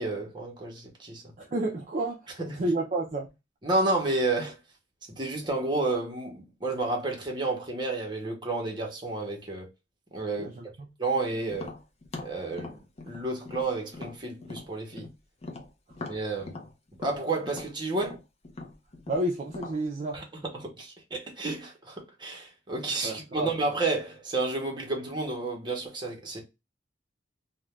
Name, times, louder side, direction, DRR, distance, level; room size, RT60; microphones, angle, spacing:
voice 1, 0.0-1.2 2.4-2.6 3.6-4.6 5.2-9.7 10.1-10.6 11.0-11.7 12.2-15.1 16.0-16.6 17.0-18.2 20.1-20.2 20.5-26.4, right 2 dB, 25° right, 0.8 m, -31 dB
voice 2, 1.4-3.3 10.4-10.9 19.1-20.2 23.0-23.5, right 2 dB, 40° right, 0.4 m, -31 dB
Tap, 11.5-15.1 15.4-19.8, left 3 dB, 35° left, 0.5 m, -41 dB
2.4 x 2.1 x 3.0 m
head